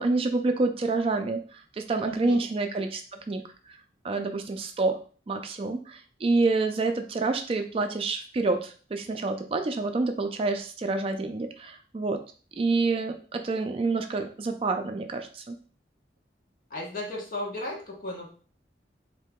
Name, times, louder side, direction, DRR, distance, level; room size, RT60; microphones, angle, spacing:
voice 1, 0.0-3.4 4.0-5.0 5.3-12.2 12.6-15.6, right 3 dB, 30° right, 6 dB, 0.3 m, -28 dB
voice 2, 2.1-2.4 16.7-18.3, left 1 dB, 50° left, -2 dB, 1.1 m, -35 dB
3.7 x 2.7 x 3.5 m, 0.41 s
head